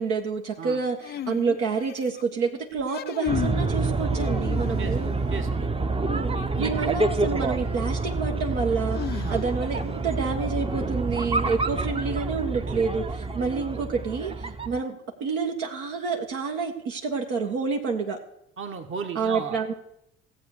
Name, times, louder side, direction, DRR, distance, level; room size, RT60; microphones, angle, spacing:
voice 1, 0.0-5.1 6.0-18.2 19.1-19.7, right 5 dB, 65° right, 1 dB, 1.6 m, -28 dB
sound 1, 1.0-2.2 2.8-3.7 4.1-5.0 7.0-7.1 8.9-9.8, left 11 dB, 35° left, 0.5 m, -34 dB
sound 2, 3.3-14.8, right 3 dB, 20° right, 0.9 m, -27 dB
voice 2, 5.3-5.9 6.3-6.8 9.2-9.4 18.6-19.7, right 6 dB, 40° right, 6 dB, 1.9 m, -35 dB
16.0 x 7.8 x 6.7 m, 0.76 s
hypercardioid pair, 60°, 30 cm